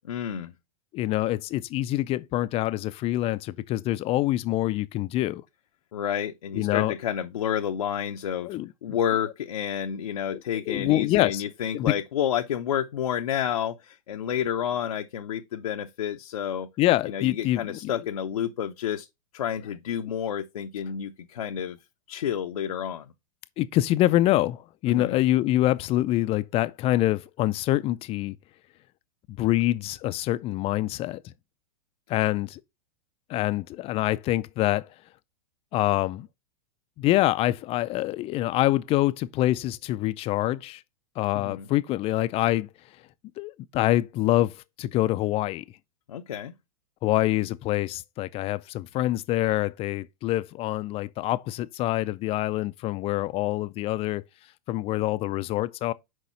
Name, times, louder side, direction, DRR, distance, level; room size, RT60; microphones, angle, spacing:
voice 1, 0.1-0.5 5.9-16.7 17.1-19.1 19.3-21.8 22.1-23.1 24.9-25.2 41.3-41.7 46.1-46.5, left 9 dB, 75° left, 0.7 m, -30 dB
voice 2, 0.9-5.4 6.6-6.9 8.4-9.0 10.3-11.4 11.7-11.9 16.8-17.9 23.6-28.4 29.3-31.2 32.1-32.6 33.3-34.9 35.7-36.3 37.0-40.8 41.2-42.7 43.4-45.6 47.0-54.2 54.7-55.9, left 15 dB, 30° left, 0.4 m, -25 dB
6.4 x 4.8 x 4.3 m
hypercardioid pair, 105°, 19 cm